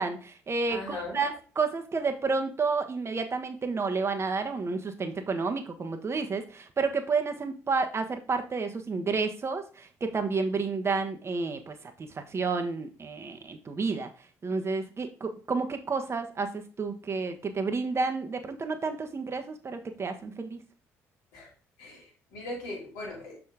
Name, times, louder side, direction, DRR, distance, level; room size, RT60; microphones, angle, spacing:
voice 1, 0.0-14.1 14.4-20.6, right 4 dB, 35° right, 6 dB, 1.3 m, -30 dB
voice 2, 0.7-1.2 21.3-21.5 21.8-23.4, left 2 dB, 75° left, -2 dB, 2.8 m, -39 dB
6.7 x 5.1 x 3.6 m, 0.38 s
hypercardioid pair, 55°, 7 cm